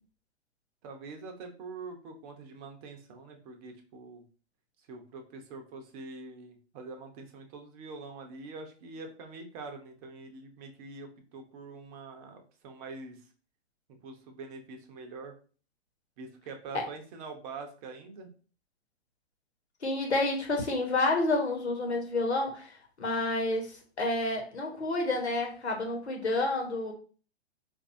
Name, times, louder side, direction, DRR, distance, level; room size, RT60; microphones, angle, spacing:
voice 1, 0.8-4.2 4.9-13.3 13.9-15.3 16.2-18.3, right 3 dB, 35° right, 5 dB, 0.8 m, -45 dB
voice 2, 19.8-26.9, left 2 dB, 80° left, 2 dB, 1.2 m, -29 dB
4.5 x 2.6 x 2.6 m, 0.40 s
figure-of-eight pair, 110°, 32 cm